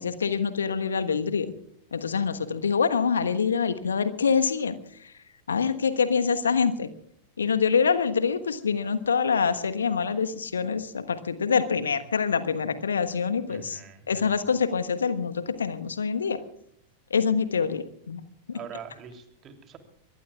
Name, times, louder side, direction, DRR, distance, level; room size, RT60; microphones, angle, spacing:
voice 1, 0.0-1.5 1.9-5.1 5.5-6.9 7.4-13.8 14.1-16.4 17.1-18.2 18.5-18.6, left 6 dB, 70° left, 11 dB, 1.3 m, -25 dB
voice 2, 13.5-14.5 18.5-19.8, right 8 dB, 30° right, 6 dB, 3.0 m, -44 dB
23.5 x 21.5 x 2.4 m, 0.71 s
figure-of-eight pair, 90°, 0 cm